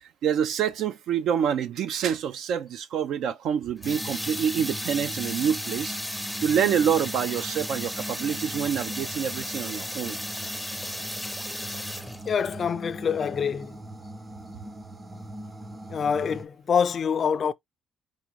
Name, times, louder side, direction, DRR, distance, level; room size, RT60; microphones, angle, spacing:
voice 1, 0.0-6.0 6.4-10.2, right 8 dB, 75° right, 0.5 m, -27 dB
sound 1, 3.8-12.5, left 1 dB, ahead, 0.5 m, -35 dB
sound 2, 3.8-16.4, right 1 dB, 25° right, 0.8 m, -41 dB
voice 2, 12.3-13.8 15.9-17.5, left 7 dB, 50° left, 0.4 m, -26 dB
4.9 x 2.6 x 3.1 m
cardioid pair, 85°, 0 cm